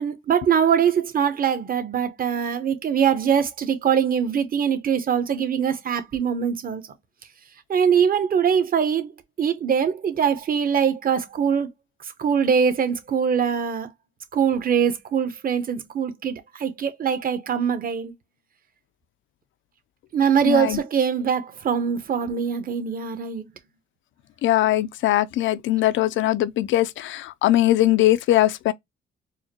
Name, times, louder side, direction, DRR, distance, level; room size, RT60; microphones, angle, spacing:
voice 1, 0.0-6.8 7.7-9.1 9.4-11.7 12.2-13.9 14.3-18.1 20.1-23.5, right 7 dB, 45° right, 0.9 m, -22 dB
voice 2, 20.5-20.8 24.4-28.7, left 14 dB, 75° left, 0.5 m, -20 dB
4.7 x 2.1 x 2.9 m
cardioid pair, 90°, 20 cm